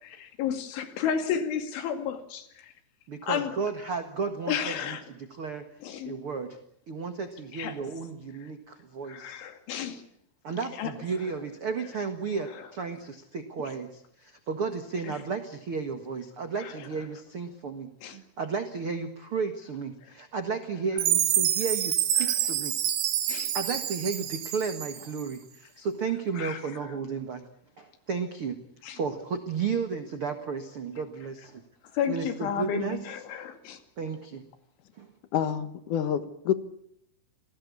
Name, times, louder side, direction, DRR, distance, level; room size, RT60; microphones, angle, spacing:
voice 1, 0.0-2.7 3.3-3.5 4.5-5.0 5.8-6.1 7.5-7.8 9.1-10.0 10.8-10.9 15.1-15.2 16.6-16.7 18.0-18.2 22.2-22.3 23.3-23.5 26.4-26.6 28.8-29.0 31.9-33.8, left 8 dB, 85° left, 8 dB, 4.7 m, -32 dB
voice 2, 3.1-5.6 6.0-6.6 6.9-9.5 10.4-22.7 23.5-27.4 27.8-28.6 28.9-31.6 32.1-33.0 34.0-34.4 34.9-35.1, right 5 dB, 70° right, 7 dB, 1.3 m, -33 dB
Chime, 21.0-25.2, right 11 dB, 85° right, 4.4 m, -27 dB
voice 3, 35.3-36.5, left 9 dB, 65° left, 11 dB, 2.1 m, -27 dB
28.5 x 19.0 x 8.4 m, 0.72 s
omnidirectional pair, 5.3 m